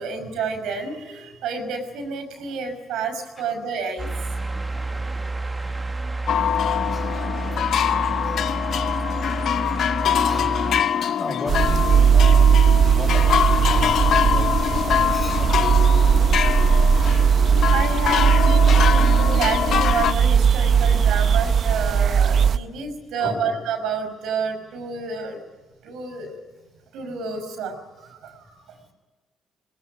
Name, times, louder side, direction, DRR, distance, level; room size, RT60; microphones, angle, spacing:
voice 1, 0.0-4.1 7.5-7.6 9.0-9.2 17.7-25.4 25.8-26.4 26.9-28.5, right 5 dB, 90° right, 7 dB, 5.8 m, -29 dB
sound 1, 4.0-10.8, right 2 dB, 20° right, 1.8 m, -29 dB
voice 2, 4.7-5.1 6.7-7.8 8.8-8.9 10.2-12.6 12.8-16.3 16.9-17.3 18.4-19.0 19.4-19.5 20.6-21.4 23.2-23.7 28.8-28.9, left 2 dB, 30° left, 3 dB, 6.0 m, -36 dB
sound 2, 6.3-20.1, left 9 dB, 70° left, 0.7 m, -24 dB
sound 3, 11.5-22.6, right 7 dB, 55° right, 0.8 m, -18 dB
20.5 x 20.5 x 9.4 m, 1.3 s
cardioid pair, 90°, 0 cm